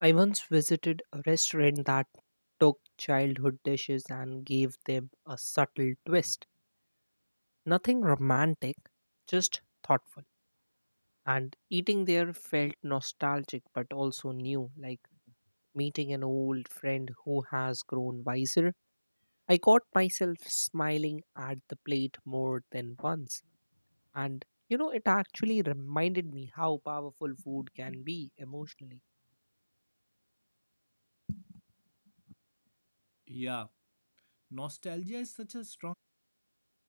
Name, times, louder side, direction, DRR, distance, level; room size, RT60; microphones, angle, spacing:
voice 1, 0.0-2.0 2.6-6.4 7.7-8.7 9.3-10.0 11.3-15.0 15.7-18.7 19.5-21.6 21.9-23.4 24.1-24.4 24.7-29.0 31.3-31.4, equal, 50° left, 0.4 m, -30 dB
voice 2, 33.3-33.7 34.5-35.9, equal, 70° left, 0.8 m, -40 dB
figure-of-eight pair, 180°, 0 cm